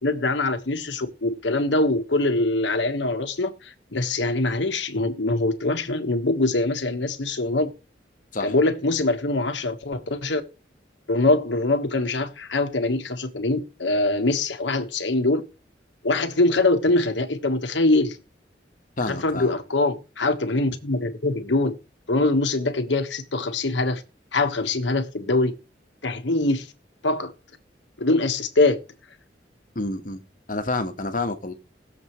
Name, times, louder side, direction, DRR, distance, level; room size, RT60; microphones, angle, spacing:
voice 1, 0.0-7.7 8.4-10.4 11.1-15.4 16.0-18.2 19.1-21.7 22.1-24.0 24.3-25.5 26.0-26.7 27.0-27.3 28.0-28.8, left 2 dB, 80° left, 1.3 m, -23 dB
voice 2, 19.0-19.5 29.7-30.2 30.5-31.5, left 2 dB, 45° left, 1.3 m, -28 dB
20.5 x 7.2 x 3.1 m
head